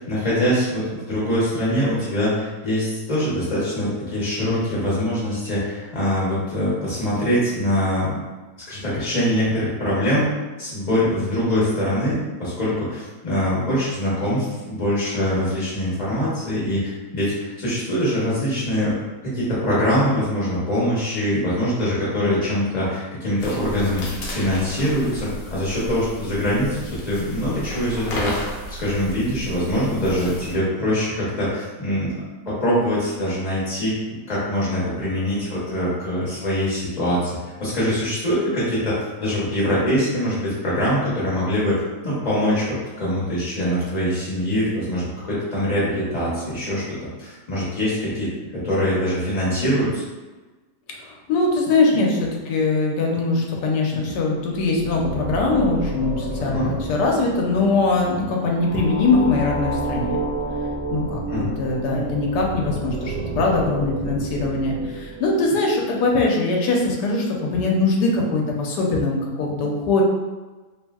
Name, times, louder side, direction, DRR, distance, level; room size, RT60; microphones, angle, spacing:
voice 1, 0.1-8.1 8.7-10.3 10.6-18.9 19.2-24.0 24.3-28.3 28.8-32.1 32.5-37.3 37.6-50.0 56.4-56.7 61.3-61.6, equal, 45° left, -9 dB, 0.6 m, -23 dB
sound 1, 23.4-30.6, left 1 dB, 65° left, 0.9 m, -33 dB
voice 2, 51.0-60.2 60.9-70.0, left 3 dB, 85° left, -1 dB, 1.2 m, -22 dB
sound 2, 54.5-65.6, right 2 dB, 50° right, 0.9 m, -30 dB
2.9 x 2.6 x 2.3 m, 1.2 s
omnidirectional pair, 1.7 m